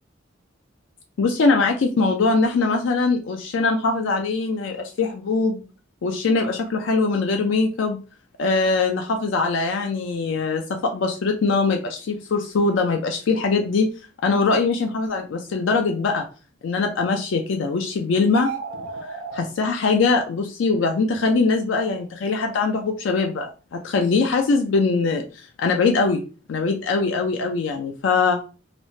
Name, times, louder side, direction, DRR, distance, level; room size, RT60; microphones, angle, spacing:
voice 1, 1.2-5.7 6.0-8.0 8.4-13.9 14.2-16.3 16.6-18.5 19.0-26.2 26.5-28.4, left 4 dB, 75° left, 3 dB, 0.4 m, -22 dB
sound 1, 18.2-19.4, right 5 dB, 90° right, 0.6 m, -32 dB
3.1 x 2.0 x 2.7 m, 0.34 s
head